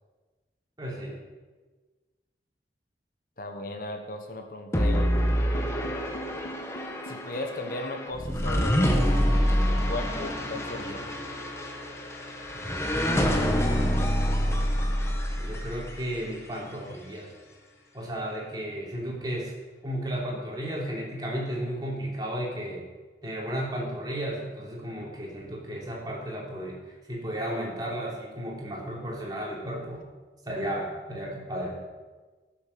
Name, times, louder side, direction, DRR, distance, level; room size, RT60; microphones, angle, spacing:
voice 1, 0.8-1.2 15.4-17.3 17.9-19.5 19.8-22.8 23.2-30.0 30.4-31.8, equal, 25° right, -3 dB, 3.4 m, -34 dB
voice 2, 3.4-5.1 7.0-9.1 9.7-11.0, left 2 dB, 50° left, 5 dB, 1.3 m, -36 dB
sound 1, 4.7-16.0, equal, 15° left, 1.3 m, -26 dB
sound 2, 5.5-17.7, left 1 dB, 80° left, 1.8 m, -42 dB
16.5 x 7.4 x 6.9 m, 1.3 s
head